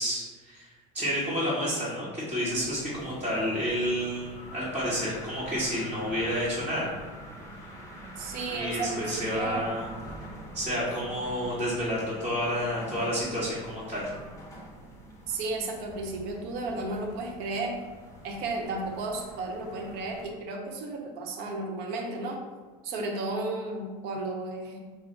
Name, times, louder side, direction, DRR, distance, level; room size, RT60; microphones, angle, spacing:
voice 1, 0.0-6.9 8.5-9.8 10.5-14.1, equal, 10° right, -10 dB, 1.4 m, -30 dB
sound 1, 2.5-20.2, equal, 15° left, 1.1 m, -45 dB
voice 2, 8.2-9.8 15.3-17.7 18.2-22.4 22.8-24.8, right 2 dB, 70° right, 1 dB, 0.9 m, -33 dB
6.0 x 2.1 x 3.8 m, 1.4 s
supercardioid pair, 105°, 18 cm